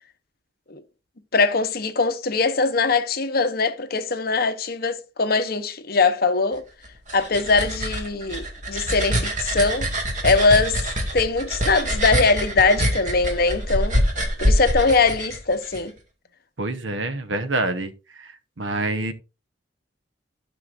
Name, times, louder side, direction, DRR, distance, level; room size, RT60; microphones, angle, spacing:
voice 1, 1.3-6.6 7.1-9.9 10.2-10.8 11.1-13.9 14.4-15.9, left 4 dB, 55° left, 0.9 m, -21 dB
sound 1, 6.8-15.8, equal, 40° right, 2.1 m, -25 dB
voice 2, 16.6-17.9 18.2-19.1, right 2 dB, 80° right, 1.1 m, -27 dB
13.0 x 6.0 x 2.6 m
head